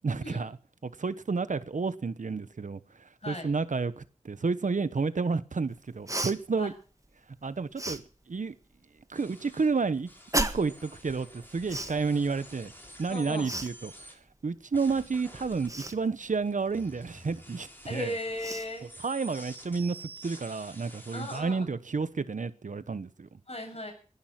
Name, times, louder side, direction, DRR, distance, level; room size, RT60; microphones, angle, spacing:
voice 1, 0.0-0.6 0.8-2.8 3.3-6.7 7.4-8.0 8.3-8.5 9.1-10.1 10.4-12.7 13.0-13.9 14.4-18.1 19.0-23.3, right 4 dB, 75° right, 1.1 m, -30 dB
Cough, 6.1-6.3 7.8-8.0 10.3-10.8 11.7-12.0 13.4-13.7 15.7-16.0 17.8-17.9 18.4-18.7, right 1 dB, 25° right, 1.7 m, -31 dB
sound 1, 9.1-14.1 14.7-21.4, equal, 15° left, 6.7 m, -50 dB
voice 2, 13.1-13.5 17.9-18.9 21.1-21.6 23.5-23.9, left 1 dB, 50° left, 7.8 m, -36 dB
20.0 x 11.0 x 6.0 m
wide cardioid pair, 45°, 13 cm